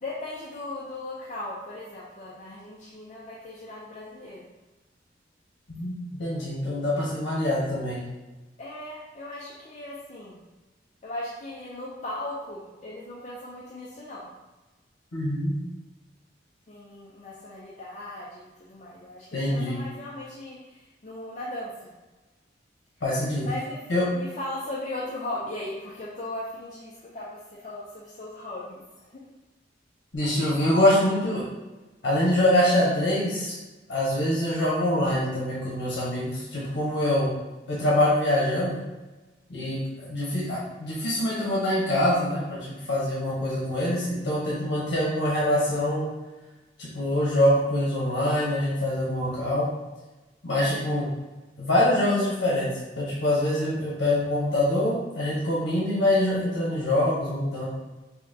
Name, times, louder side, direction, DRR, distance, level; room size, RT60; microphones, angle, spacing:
voice 1, 0.0-4.5 8.6-10.4 11.0-14.3 16.7-21.9 23.4-23.9 24.1-29.3 50.7-51.0, left 1 dB, 40° left, -6 dB, 0.5 m, -38 dB
voice 2, 5.7-8.0 15.1-15.5 19.3-19.8 23.0-23.5 23.9-24.0 30.1-31.4 32.0-33.5 33.9-37.3 37.7-38.8 39.5-46.1 46.8-49.7 50.4-51.1 51.6-52.7 53.0-57.7, left 1 dB, 85° left, -6 dB, 1.1 m, -24 dB
5.6 x 2.3 x 2.7 m, 1.2 s
head